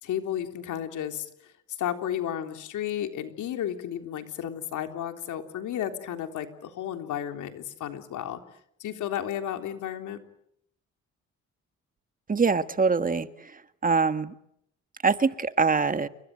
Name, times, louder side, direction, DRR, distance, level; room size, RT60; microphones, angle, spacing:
voice 1, 0.0-8.4 8.8-10.2, left 10 dB, 80° left, 6 dB, 3.6 m, -33 dB
voice 2, 12.3-13.5 13.8-14.3 15.0-16.1, right 4 dB, 30° right, 11 dB, 1.7 m, -24 dB
29.5 x 24.0 x 7.8 m, 0.74 s
cardioid pair, 90°, 30 cm